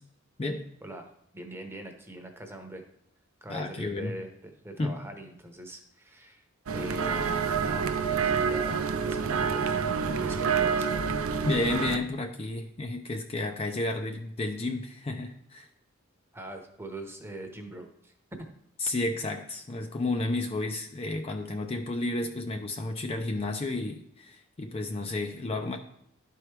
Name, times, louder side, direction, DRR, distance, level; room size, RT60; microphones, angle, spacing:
voice 1, 0.8-2.8 3.4-6.4 6.7-9.8 10.2-10.9 16.3-18.1, right 1 dB, 10° right, 4 dB, 0.9 m, -42 dB
voice 2, 3.5-4.1 4.8-5.0 11.4-15.7 18.8-25.8, left 2 dB, 30° left, 5 dB, 0.5 m, -31 dB
sound 1, 6.7-12.0, right 6 dB, 80° right, 0.5 m, -28 dB
11.5 x 4.6 x 3.3 m, 0.72 s
head